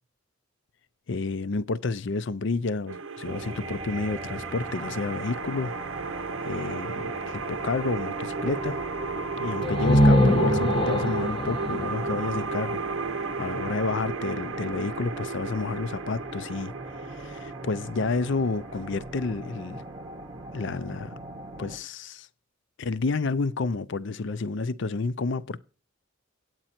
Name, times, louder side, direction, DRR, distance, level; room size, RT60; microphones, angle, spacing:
voice 1, 1.1-5.7 6.4-8.8 9.4-12.8 13.4-16.7 17.1-19.8 20.5-21.1 21.6-22.3 22.8-25.6, left 3 dB, 60° left, 0.5 m, -30 dB
sound 1, 2.9-21.8, right 4 dB, 75° right, 0.7 m, -34 dB
sound 2, 3.2-21.8, right 1 dB, 25° right, 0.8 m, -40 dB
sound 3, 9.6-13.3, equal, 25° left, 0.9 m, -23 dB
9.0 x 8.6 x 4.3 m
head